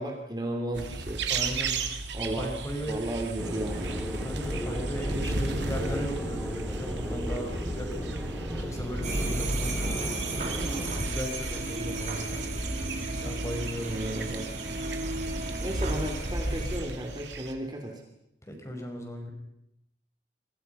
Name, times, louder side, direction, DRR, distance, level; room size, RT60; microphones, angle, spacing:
voice 1, 0.0-1.2 2.1-2.5 2.9-3.9 13.8-14.5 15.6-17.9, right 1 dB, 20° right, 2 dB, 3.1 m, -34 dB
sound 1, 0.7-17.5, right 3 dB, 65° right, 2.8 m, -36 dB
voice 2, 1.3-1.8 2.4-3.0 4.2-8.2 8.6-10.1 11.0-12.5 13.2-13.9 18.5-19.3, equal, 15° left, 3 dB, 5.4 m, -36 dB
sound 2, 3.4-11.0, equal, ahead, 6.2 m, -35 dB
sound 3, 9.0-16.8, right 2 dB, 40° right, 3.9 m, -33 dB
28.5 x 23.0 x 5.7 m, 0.81 s
head